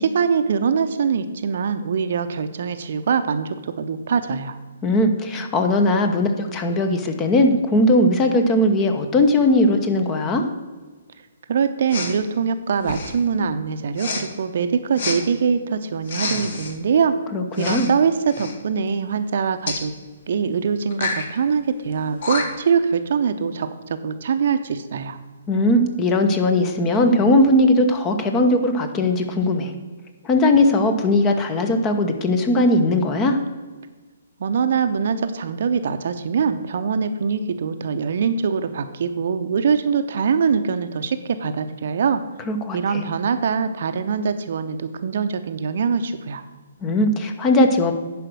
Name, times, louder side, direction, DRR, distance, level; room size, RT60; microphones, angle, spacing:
voice 1, 0.0-4.6 11.5-17.1 17.6-19.9 20.3-25.2 34.4-42.2 42.7-46.4, right 6 dB, 55° right, 9 dB, 0.7 m, -23 dB
voice 2, 4.8-10.4 17.3-17.9 25.5-29.7 30.2-33.4 42.5-43.0 46.8-47.9, left 1 dB, 20° left, 7 dB, 1.0 m, -19 dB
Respiratory sounds, 11.9-12.2 12.8-13.2 14.0-14.2 15.0-15.2 16.0-16.7 17.5-17.9 18.2-18.5 19.7-19.8 20.9-21.3 21.9-22.0 22.2-22.7, left 3 dB, 55° left, 1.5 m, -28 dB
10.5 x 5.0 x 6.2 m, 1.4 s
figure-of-eight pair, 130°, 0 cm